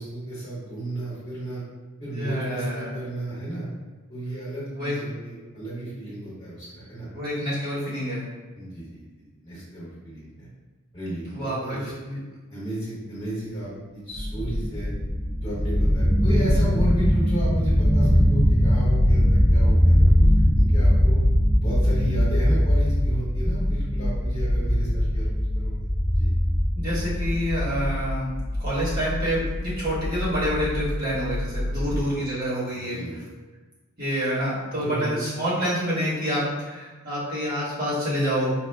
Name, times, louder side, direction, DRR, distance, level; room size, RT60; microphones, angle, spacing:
voice 1, 0.0-1.6 2.0-3.7 4.1-7.1 8.5-9.1 9.4-10.5 10.9-11.8 12.5-14.9 15.4-21.2 21.6-25.3 25.5-25.7 26.1-26.3 31.6-32.0 32.7-33.1 34.8-35.3, right 1 dB, 35° left, -10 dB, 1.2 m, -33 dB
voice 2, 2.1-2.9 4.8-4.9 7.1-8.2 11.3-12.2 26.7-28.3 28.6-33.2 34.0-38.5, equal, 45° right, -9 dB, 1.4 m, -27 dB
sound 1, 14.2-32.0, equal, 10° right, 0.3 m, -21 dB
4.7 x 2.2 x 2.2 m, 1.3 s
head